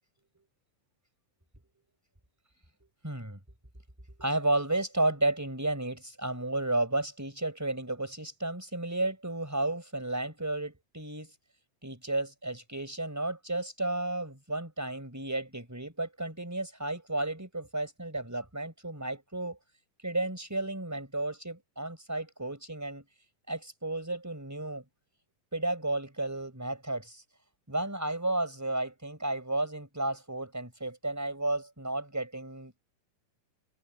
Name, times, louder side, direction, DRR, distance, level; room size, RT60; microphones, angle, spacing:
voice 1, 3.0-3.4 4.2-11.3 11.8-19.6 20.0-23.0 23.5-24.8 25.5-27.2 27.7-32.8, right 2 dB, 5° right, 5.4 m, -32 dB
omnidirectional pair, 3.9 m